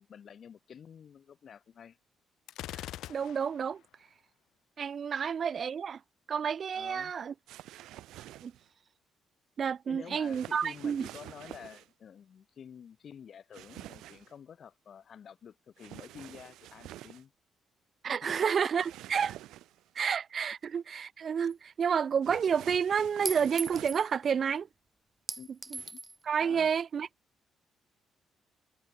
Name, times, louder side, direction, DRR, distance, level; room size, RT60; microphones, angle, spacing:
voice 1, 0.0-2.0 5.1-5.3 6.7-7.1 9.9-17.3 18.1-18.2 25.4-25.5 25.9-26.0 26.4-26.7, left 8 dB, 55° left, 8.0 m, -50 dB
Gunshot gunfire, 2.5-3.7, left 13 dB, 85° left, 4.8 m, -42 dB
voice 2, 3.1-3.8 4.8-6.0 6.3-7.3 8.4-8.5 9.6-11.1 18.0-19.4 19.9-24.7 25.7-25.8 26.2-27.1, right 7 dB, 50° right, 2.4 m, -30 dB
sound 1, 7.5-8.7 10.2-11.9 13.5-14.3 15.8-17.2 18.8-19.9 22.2-24.1 25.7-25.9, right 14 dB, 85° right, 7.8 m, -48 dB
Chink clink, 21.5-21.6 23.3-24.1 25.3-26.2, right 3 dB, 20° right, 6.0 m, -38 dB
cardioid pair, 90°, 0 cm